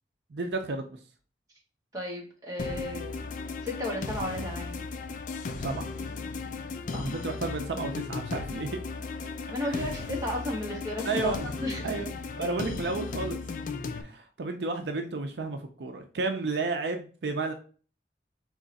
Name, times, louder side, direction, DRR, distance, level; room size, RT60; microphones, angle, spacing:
voice 1, 0.3-1.0 5.6-5.9 7.0-8.8 9.7-9.8 11.0-11.4 11.8-13.4 14.0-17.5, right 3 dB, 75° right, 6 dB, 0.5 m, -32 dB
voice 2, 1.9-3.2 3.6-4.8 6.9-7.2 9.5-12.1 12.4-12.5, left 1 dB, 20° right, -3 dB, 1.2 m, -34 dB
sound 1, 2.6-14.0, left 4 dB, 45° left, 0.3 m, -36 dB
3.6 x 3.2 x 4.0 m, 0.39 s
head